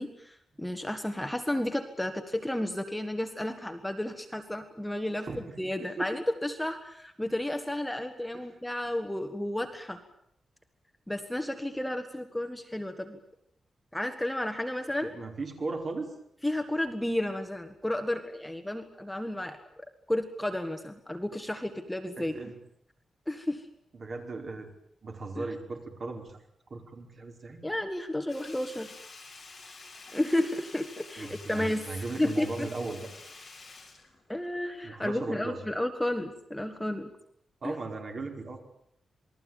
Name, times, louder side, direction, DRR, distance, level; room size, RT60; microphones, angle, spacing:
voice 1, 0.0-5.3 5.6-10.0 11.1-13.2 13.9-15.1 16.4-22.3 23.3-23.7 25.4-25.5 27.6-28.9 30.1-31.9 32.2-32.7 34.3-37.1 37.6-37.7, left 1 dB, 5° left, 6 dB, 1.7 m, -32 dB
voice 2, 5.2-6.1 8.3-8.5 15.0-16.1 22.2-22.5 23.9-24.7 25.0-26.4 26.7-27.6 31.2-33.1 34.8-35.6 37.6-38.6, right 3 dB, 40° right, 3 dB, 5.0 m, -37 dB
Sink (filling or washing), 28.3-34.8 35.1-35.2, left 3 dB, 25° left, 7.6 m, -49 dB
28.0 x 21.0 x 9.2 m, 0.72 s
wide cardioid pair, 175°, 0 cm